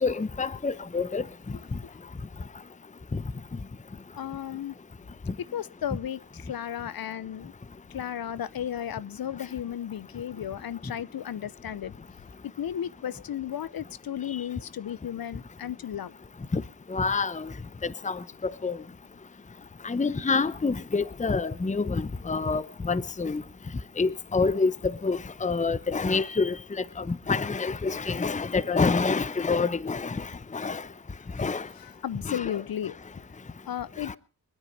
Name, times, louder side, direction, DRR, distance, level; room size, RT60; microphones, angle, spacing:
voice 1, 0.0-1.2 3.1-3.2 5.3-5.4 16.5-16.6 16.9-17.5 17.8-18.8 19.8-23.4 24.0-26.6 27.0-30.8 31.4-31.7 32.2-32.6 34.1-34.2, left 4 dB, 20° left, 0.8 m, -27 dB
voice 2, 1.5-2.0 4.1-4.8 5.4-7.5 7.9-11.9 12.4-16.1 31.4-31.5 31.8-32.9 33.6-34.1, left 10 dB, 60° left, 0.8 m, -34 dB
24.0 x 9.4 x 5.4 m
cardioid pair, 50°, 40 cm